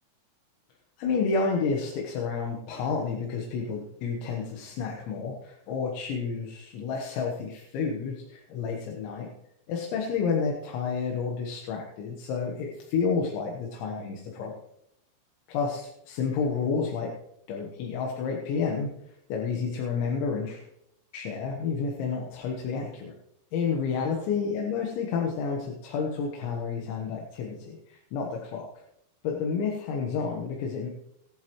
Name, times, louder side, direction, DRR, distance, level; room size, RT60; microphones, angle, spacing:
voice 1, 1.0-9.3 9.7-14.5 15.5-17.1 17.5-20.6 21.1-23.1 23.5-28.7 29.2-30.9, left 5 dB, 90° left, 0 dB, 3.7 m, -30 dB
21.5 x 7.7 x 3.1 m, 0.78 s
omnidirectional pair, 5.1 m